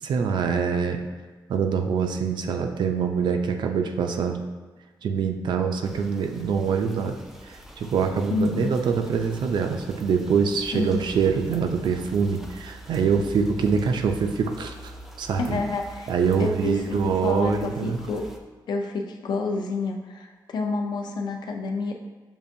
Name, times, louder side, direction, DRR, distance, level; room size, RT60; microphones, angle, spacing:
voice 1, 0.0-1.0 1.5-4.4 5.0-14.9 15.2-15.6 16.1-18.0, right 6 dB, 70° right, 5 dB, 0.4 m, -24 dB
sound 1, 5.8-18.4, right 1 dB, 5° right, 0.3 m, -44 dB
voice 2, 8.3-8.7 10.7-11.0 15.4-16.1 16.4-18.2 18.7-21.9, left 3 dB, 65° left, 2 dB, 0.5 m, -28 dB
6.9 x 2.5 x 2.6 m, 1.4 s
wide cardioid pair, 170°, 8 cm